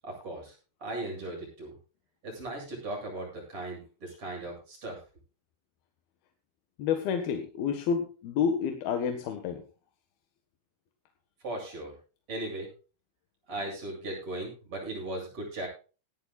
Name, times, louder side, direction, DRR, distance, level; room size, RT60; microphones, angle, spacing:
voice 1, 0.0-0.6 0.8-1.8 2.2-5.0 11.4-12.0 12.3-12.7 13.5-15.7, right 1 dB, 25° right, -1 dB, 8.8 m, -37 dB
voice 2, 6.8-9.6, left 7 dB, 60° left, 5 dB, 3.0 m, -29 dB
18.0 x 14.5 x 2.4 m, 0.35 s
omnidirectional pair, 5.6 m